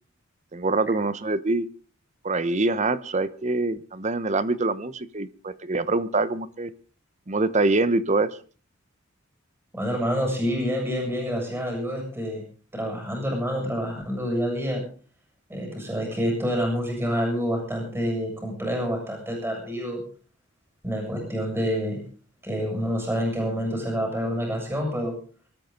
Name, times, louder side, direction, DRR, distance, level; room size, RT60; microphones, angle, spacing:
voice 1, 0.5-1.7 2.2-6.7 7.3-8.4, right 2 dB, 35° right, 15 dB, 0.9 m, -25 dB
voice 2, 9.7-12.4 12.7-14.8 15.5-20.0 20.8-22.0 22.4-25.1, equal, 10° right, 1 dB, 7.2 m, -27 dB
24.5 x 13.5 x 3.9 m, 0.40 s
head